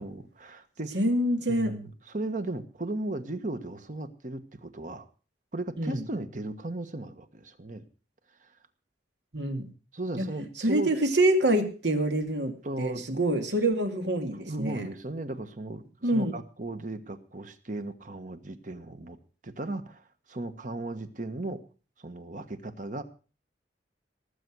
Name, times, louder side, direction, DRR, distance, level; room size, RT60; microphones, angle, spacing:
voice 1, 0.0-1.0 1.5-5.0 5.5-7.8 8.4-8.6 9.9-10.9 12.6-13.1 14.3-19.2 19.4-21.6 22.0-23.0, right 2 dB, 45° right, 10 dB, 1.4 m, -36 dB
voice 2, 0.9-1.7 5.8-6.0 9.3-9.7 10.1-10.2 10.6-14.9 16.0-16.3, right 1 dB, 80° right, 6 dB, 2.4 m, -26 dB
18.5 x 8.2 x 6.2 m, 0.37 s
head